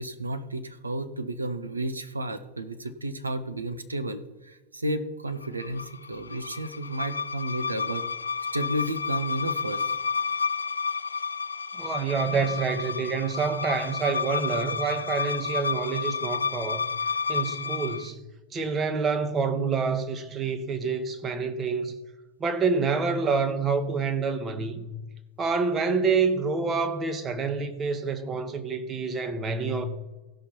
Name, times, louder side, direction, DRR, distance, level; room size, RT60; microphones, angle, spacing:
voice 1, 0.0-8.1 8.5-9.9, right 1 dB, 80° right, 0.8 m, -32 dB
sound 1, 5.4-18.1, left 5 dB, 75° left, 0.3 m, -31 dB
voice 2, 11.8-16.8 17.3-18.2 18.5-21.9 22.4-24.9 25.4-29.9, right 5 dB, 25° right, 1.1 m, -27 dB
17.0 x 5.8 x 4.4 m
figure-of-eight pair, 90°, 0 cm